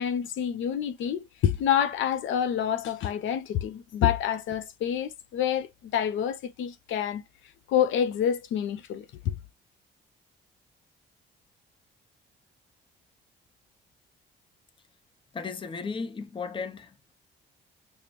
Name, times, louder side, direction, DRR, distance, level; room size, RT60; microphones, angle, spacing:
voice 1, 0.0-7.2 7.7-9.4, left 9 dB, 75° left, 0.5 m, -27 dB
voice 2, 15.3-17.1, left 5 dB, 25° left, 0.6 m, -35 dB
5.1 x 2.1 x 2.9 m
cardioid pair, 90°, 20 cm